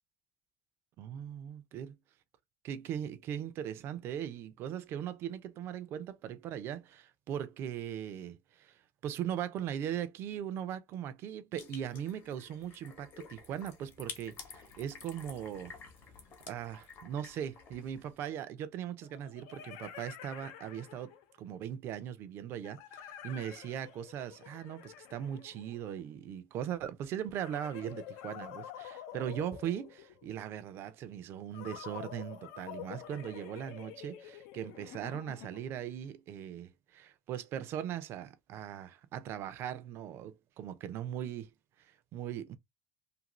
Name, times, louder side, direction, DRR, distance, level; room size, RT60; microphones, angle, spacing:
voice 1, 1.0-2.0 2.6-15.8 16.5-21.1 21.4-41.5 41.8-42.6, right 10 dB, 45° right, 0.4 m, -39 dB
sound 1, 11.6-18.2, left 5 dB, 40° left, 0.8 m, -51 dB
sound 2, 17.6-17.7 19.0-21.4 22.6-26.1 27.3-30.4 31.5-35.8, left 10 dB, 85° left, 0.6 m, -48 dB
2.7 x 2.6 x 2.9 m
cardioid pair, 170°, 6 cm